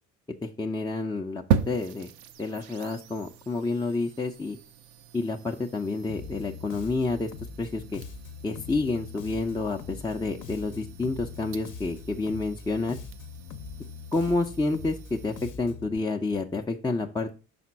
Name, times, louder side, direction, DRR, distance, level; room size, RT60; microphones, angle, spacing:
voice 1, 0.4-2.1 2.4-4.6 5.1-7.3 7.6-8.0 8.4-13.0 14.1-17.3, left 3 dB, 10° left, 2 dB, 0.7 m, -29 dB
sound 1, 1.5-15.5, right 8 dB, 65° right, 0.7 m, -37 dB
Bass guitar, 6.1-16.0, left 5 dB, 45° left, 0.9 m, -42 dB
5.8 x 4.3 x 5.9 m, 0.35 s
hypercardioid pair, 55°, 42 cm